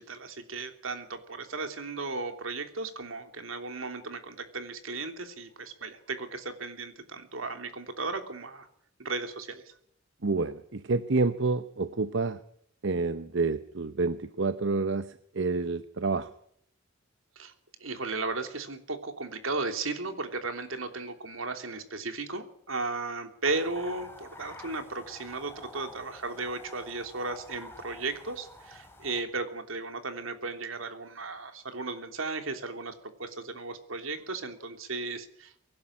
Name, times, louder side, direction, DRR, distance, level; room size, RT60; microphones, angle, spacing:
voice 1, 0.0-8.7 9.0-9.7 17.4-17.5 17.8-32.9 33.2-35.6, right 3 dB, 85° right, 7 dB, 3.1 m, -35 dB
voice 2, 10.2-12.4 12.8-16.3, right 3 dB, 65° right, 12 dB, 0.8 m, -28 dB
sound 1, 23.4-29.2, left 2 dB, 10° left, 3.5 m, -49 dB
24.0 x 11.5 x 9.8 m, 0.69 s
head